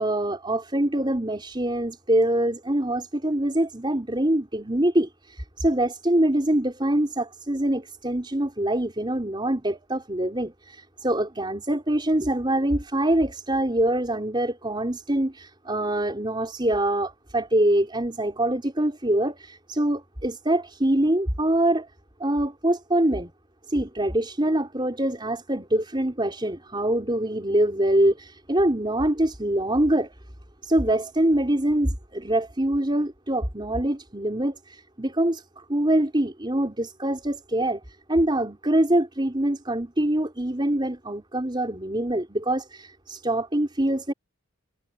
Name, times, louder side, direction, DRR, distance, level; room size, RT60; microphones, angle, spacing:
voice 1, 0.0-21.9 22.2-23.3 23.7-30.1 30.6-35.4 35.7-37.8 38.1-44.1, right 1 dB, 25° right, 4.7 m, -24 dB
head